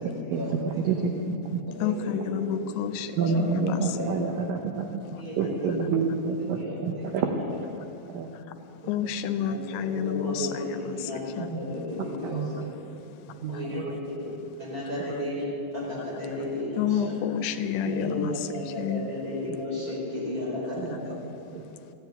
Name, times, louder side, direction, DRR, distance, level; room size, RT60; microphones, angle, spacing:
voice 1, 0.0-0.8 1.8-1.9 2.2-2.6 3.0-4.4 5.1-5.8 6.5-7.4 9.5-11.2 11.5-12.8 13.5-14.3 14.6-17.1 17.9-21.4, left 1 dB, 20° right, -5 dB, 4.8 m, -34 dB
voice 2, 0.8-1.6 3.2-5.0 5.4-7.3 8.1-8.3 11.4-11.6 12.2-12.5 13.4-13.9 15.1-15.2 18.2-18.3 20.8-21.2 21.5-21.6, right 5 dB, 75° right, 3 dB, 2.1 m, -28 dB
voice 3, 1.8-3.1 3.4-4.1 8.9-11.5 16.8-18.5 18.8-19.0, left 8 dB, 85° left, 10 dB, 3.0 m, -30 dB
15.0 x 10.5 x 9.3 m, 2.6 s
omnidirectional pair, 5.2 m